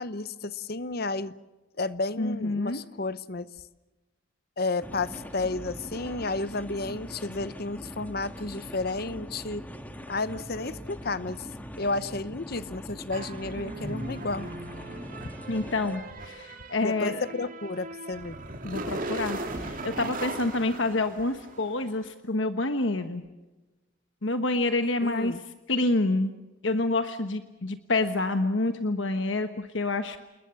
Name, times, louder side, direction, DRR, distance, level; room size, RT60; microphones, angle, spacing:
voice 1, 0.0-1.3 1.8-3.5 4.6-9.7 10.1-11.5 11.8-14.5 16.8-18.4 25.0-25.4, left 3 dB, 50° left, 16 dB, 0.9 m, -32 dB
voice 2, 2.2-2.8 15.5-17.2 18.6-23.2 24.2-25.3 25.7-26.3 26.6-30.2, left 2 dB, 70° left, 9 dB, 1.3 m, -27 dB
sound 1, 4.8-16.0, equal, 10° left, 1.7 m, -42 dB
sound 2, 13.1-21.8, right 2 dB, 45° right, 2.7 m, -38 dB
28.5 x 21.0 x 7.0 m, 1.1 s
head